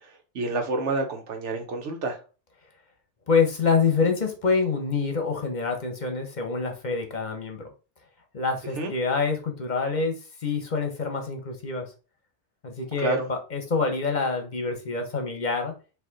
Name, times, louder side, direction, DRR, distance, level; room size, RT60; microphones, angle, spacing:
voice 1, 0.3-2.2 8.8-8.9 13.0-13.3, right 2 dB, 85° right, 1.3 m, -28 dB
voice 2, 3.3-7.7 8.3-11.9 12.6-15.7, left 4 dB, 45° left, 0.8 m, -26 dB
4.6 x 2.6 x 3.8 m
omnidirectional pair, 1.2 m